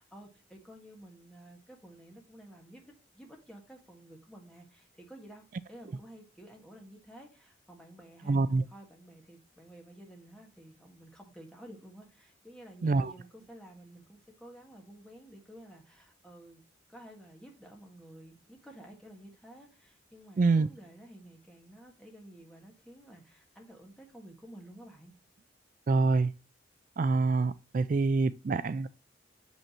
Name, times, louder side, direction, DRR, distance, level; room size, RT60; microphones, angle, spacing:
voice 1, 0.0-8.4 8.7-16.6 16.9-25.1, right 1 dB, 5° left, 1.7 m, -52 dB
voice 2, 8.3-8.6 12.8-13.1 20.4-20.7 25.9-26.3 27.0-28.9, right 3 dB, 45° right, 0.3 m, -26 dB
7.1 x 5.5 x 2.9 m
head